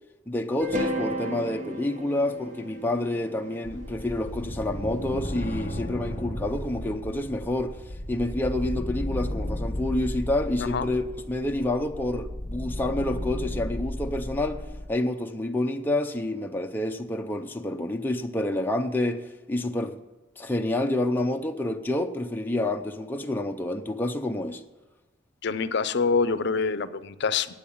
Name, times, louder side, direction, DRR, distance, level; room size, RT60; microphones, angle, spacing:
voice 1, 0.3-7.8 8.1-14.6 14.9-20.0 20.4-24.6, left 1 dB, 10° left, 0.5 m, -28 dB
sound 1, 0.6-4.8, equal, 40° right, 1.0 m, -34 dB
sound 2, 3.6-14.9, left 1 dB, 35° left, 1.3 m, -34 dB
voice 2, 25.4-27.5, left 5 dB, 60° left, 0.5 m, -26 dB
8.6 x 8.5 x 8.4 m
head